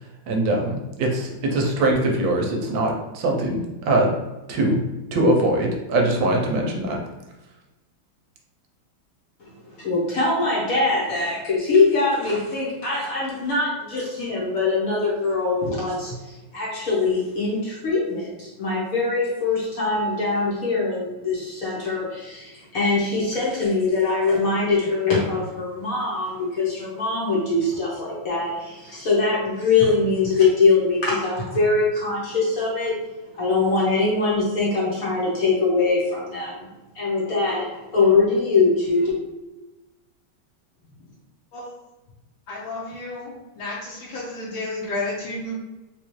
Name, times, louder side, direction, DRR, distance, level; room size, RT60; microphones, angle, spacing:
voice 1, 0.3-4.1 4.5-4.8 5.1-7.0, right 1 dB, 70° right, 1 dB, 1.2 m, -22 dB
voice 2, 9.7-33.0 33.3-36.7 36.9-39.1, left 3 dB, 50° left, -6 dB, 1.1 m, -22 dB
voice 3, 42.5-45.5, left 2 dB, 70° left, -5 dB, 1.4 m, -31 dB
4.0 x 2.4 x 3.0 m, 1.1 s
omnidirectional pair, 2.3 m